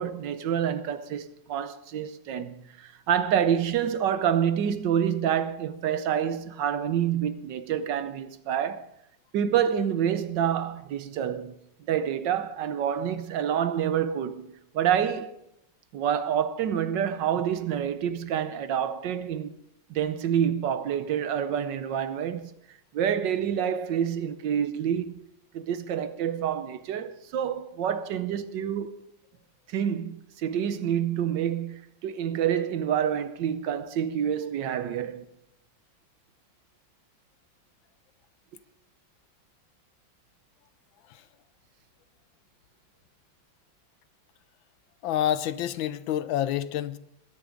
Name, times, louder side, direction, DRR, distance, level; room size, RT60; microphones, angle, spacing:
voice 1, 0.0-8.9 9.3-11.5 11.9-15.3 15.9-19.6 19.9-22.5 22.9-25.2 25.5-28.9 29.7-35.3, right 9 dB, 70° right, 1.4 m, -27 dB
voice 2, 45.0-47.0, left 11 dB, 85° left, 1.5 m, -28 dB
20.5 x 10.5 x 3.8 m
omnidirectional pair, 2.1 m